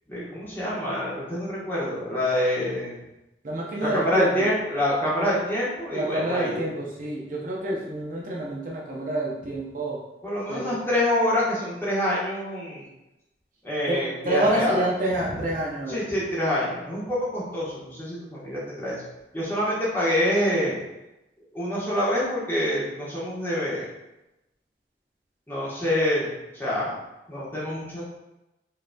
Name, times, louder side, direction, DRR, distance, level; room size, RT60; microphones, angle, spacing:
voice 1, 0.1-3.0 3.8-6.6 10.2-12.9 13.6-14.8 15.3-15.4 15.9-19.0 19.3-20.8 21.5-23.8 25.5-26.3 26.5-27.0 27.3-28.0, left 1 dB, 10° left, -8 dB, 1.2 m, -26 dB
voice 2, 3.4-4.5 5.2-5.3 5.9-10.0 10.5-10.8 13.9-16.1, right 1 dB, 45° right, -3 dB, 0.7 m, -28 dB
5.1 x 3.0 x 2.2 m, 0.95 s
head